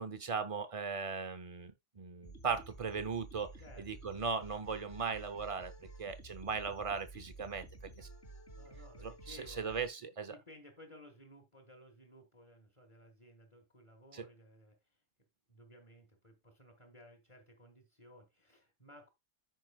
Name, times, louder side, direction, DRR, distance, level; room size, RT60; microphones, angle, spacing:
voice 1, 0.0-3.5 3.8-7.7 8.0-8.1 9.0-10.4 14.1-14.2, right 5 dB, 55° right, 0.3 m, -38 dB
sound 1, 2.2-9.9, right 2 dB, 40° left, 2.9 m, -52 dB
voice 2, 8.6-14.8 15.5-19.1, left 1 dB, 20° left, 1.5 m, -58 dB
14.0 x 4.7 x 2.3 m
omnidirectional pair, 1.7 m